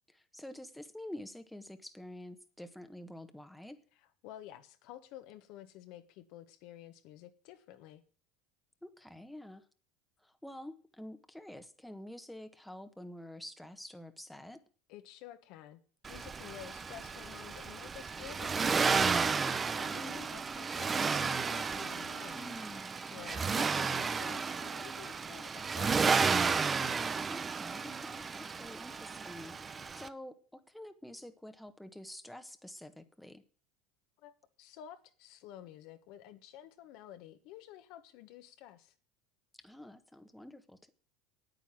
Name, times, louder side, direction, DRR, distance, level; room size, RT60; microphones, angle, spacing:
voice 1, 0.1-3.8 8.8-9.6 10.2-14.6 19.3-19.6 22.3-23.0 27.3-29.6 29.9-33.4 39.6-40.9, left 1 dB, 5° left, 1.3 m, -48 dB
voice 2, 4.2-8.0 14.9-15.8 16.1-18.7 19.1-19.4 19.7-22.5 23.1-26.3 34.2-38.9, left 12 dB, 65° left, 1.3 m, -51 dB
Accelerating revving vroom, 16.0-30.1, right 5 dB, 25° right, 0.7 m, -33 dB
9.2 x 9.1 x 7.6 m
hypercardioid pair, 85°, 0 cm